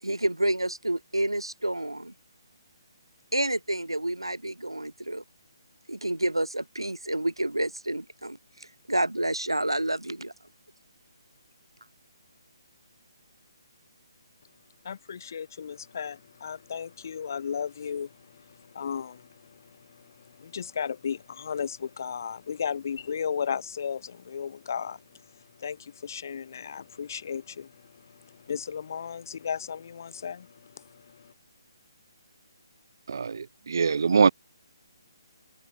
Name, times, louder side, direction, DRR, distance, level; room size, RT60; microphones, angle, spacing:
voice 1, 0.0-2.1 3.3-5.2 5.9-10.3, right 1 dB, 80° right, 4.7 m, -29 dB
voice 2, 14.8-31.3, left 7 dB, 45° left, 7.5 m, -35 dB
voice 3, 33.1-34.3, right 5 dB, 50° right, 2.0 m, -23 dB
figure-of-eight pair, 140°, 2 cm